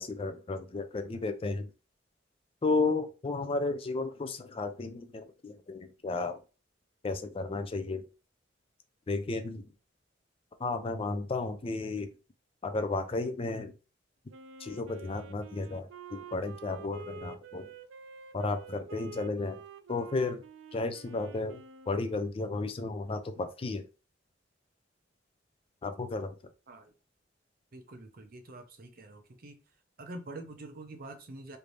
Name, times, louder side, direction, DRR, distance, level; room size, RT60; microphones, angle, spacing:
voice 1, 0.0-1.7 2.6-6.4 7.0-8.0 9.1-9.7 10.6-12.1 12.6-13.7 14.6-17.7 18.3-19.6 19.9-20.4 20.7-23.9 25.8-26.3, left 3 dB, 30° left, 8 dB, 0.4 m, -33 dB
Wind instrument woodwind instrument, 14.3-22.4, right 5 dB, 90° right, 0.4 m, -48 dB
voice 2, 27.7-29.6 30.0-31.6, right 2 dB, 50° right, 6 dB, 0.7 m, -46 dB
3.3 x 2.6 x 3.0 m, 0.32 s
head